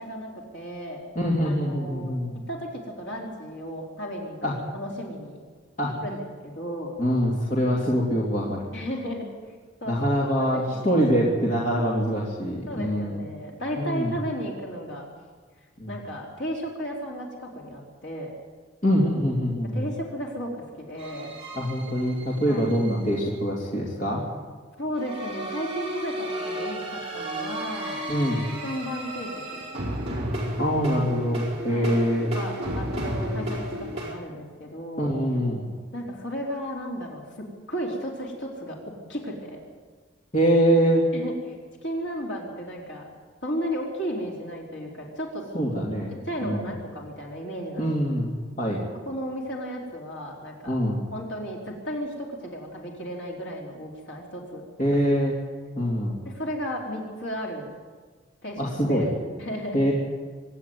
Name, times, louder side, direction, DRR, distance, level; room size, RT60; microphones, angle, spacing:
voice 1, 0.0-1.0 1.4-2.2 2.5-5.4 6.0-6.2 6.4-6.9 8.7-9.3 9.8-10.0 10.4-10.5 10.7-11.0 12.7-15.1 15.9-18.3 19.7-20.5 20.8-21.3 22.5-22.7 24.8-28.1 28.5-29.6 31.7-31.9 32.3-35.1 35.9-38.8 39.1-39.6 41.1-41.6 41.8-43.1 43.4-45.4 46.2-47.9 48.9-50.7 51.1-54.6 56.2-57.7 58.4-59.1 59.4-59.9, equal, 70° left, -1 dB, 3.9 m, -34 dB
voice 2, 1.1-2.3 4.4-4.5 5.8-5.9 7.0-8.8 9.9-13.2 13.8-14.1 15.8-15.9 18.8-19.9 21.5-24.2 28.1-28.4 30.6-32.3 35.0-35.7 40.3-41.1 45.5-46.1 46.4-46.7 47.8-48.3 48.6-48.8 50.7-51.0 54.8-55.4 55.7-56.3 58.6-59.1 59.7-59.9, equal, 40° left, -4 dB, 3.0 m, -24 dB
sound 1, 21.0-23.2 25.0-34.1, right 1 dB, 30° right, 4.9 m, -33 dB
25.0 x 11.0 x 9.6 m, 1.5 s
head